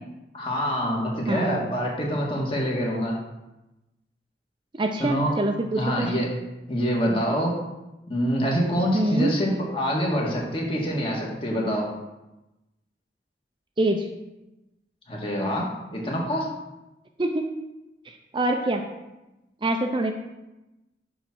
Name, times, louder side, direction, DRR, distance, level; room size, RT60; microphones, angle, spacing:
voice 1, 0.3-3.2 5.0-5.3 5.7-6.3 6.7-7.5 8.1-11.9 15.1-16.5, equal, 30° left, -2 dB, 1.8 m, -26 dB
voice 2, 1.3-1.7 4.7-6.2 8.9-9.3 13.8-14.1 17.2-17.5 18.0-18.8 19.6-20.1, right 1 dB, 30° right, 4 dB, 0.5 m, -25 dB
9.6 x 3.7 x 6.1 m, 0.99 s
head